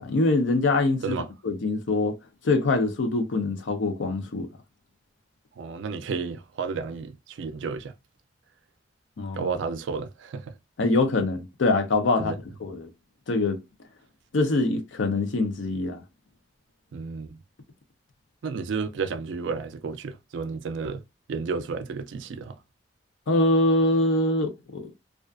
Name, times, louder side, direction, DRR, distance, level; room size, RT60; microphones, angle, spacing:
voice 1, 0.0-1.2 1.4-2.2 2.4-4.5 9.2-9.5 10.8-12.3 12.6-12.9 13.3-13.6 14.3-16.0 23.3-24.9, left 2 dB, 85° left, 0.5 m, -24 dB
voice 2, 5.6-7.9 9.3-10.5 12.2-12.4 16.9-17.4 18.4-21.0 21.3-22.6, right 5 dB, 85° right, 0.4 m, -32 dB
2.4 x 2.3 x 2.3 m
head